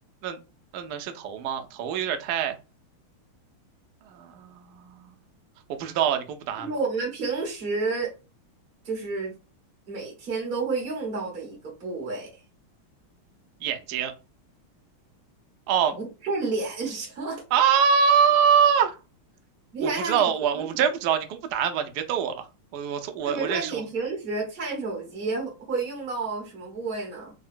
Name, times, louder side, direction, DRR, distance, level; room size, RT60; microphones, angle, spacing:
voice 1, 0.7-2.5 4.1-5.1 5.7-6.7 13.6-14.1 15.7-15.9 17.5-19.0 19.8-22.4 22.7-23.8, right 7 dB, 90° right, 7 dB, 0.8 m, -24 dB
voice 2, 6.6-8.1 8.8-9.3 9.9-12.4 15.9-17.4 19.7-20.2 20.6-20.7 23.2-27.3, right 3 dB, 35° right, -1 dB, 1.0 m, -30 dB
3.7 x 2.1 x 2.4 m, 0.30 s
omnidirectional pair, 2.3 m